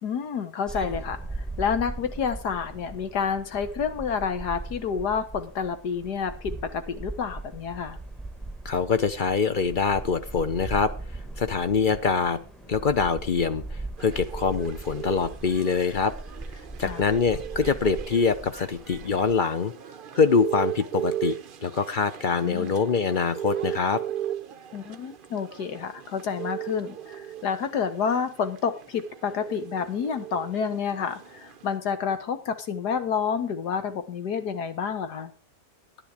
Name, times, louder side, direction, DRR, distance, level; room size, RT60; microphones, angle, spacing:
voice 1, 0.0-1.2 1.6-8.0 16.8-17.0 22.4-22.7 24.7-35.3, left 6 dB, 80° left, 10 dB, 1.9 m, -29 dB
sound 1, 0.7-19.4, right 2 dB, ahead, 1.0 m, -39 dB
voice 2, 8.6-10.9 11.4-12.4 12.7-16.1 16.8-19.7 20.1-24.0, left 5 dB, 45° left, 11 dB, 0.6 m, -24 dB
sound 2, 14.0-31.8, right 11 dB, 50° right, 0.6 m, -37 dB
10.5 x 10.0 x 4.9 m, 0.33 s
omnidirectional pair, 1.7 m